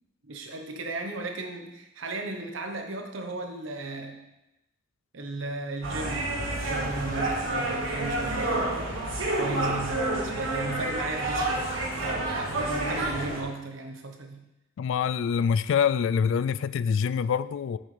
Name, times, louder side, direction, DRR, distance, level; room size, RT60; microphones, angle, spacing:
voice 1, 0.2-4.2 5.1-8.8 9.3-14.5, right 2 dB, 70° right, 4 dB, 1.0 m, -35 dB
sound 1, 5.8-13.4, right 2 dB, 85° right, 1.7 m, -29 dB
voice 2, 14.8-17.8, left 7 dB, 70° left, 15 dB, 0.3 m, -25 dB
8.0 x 6.5 x 3.3 m, 0.90 s
head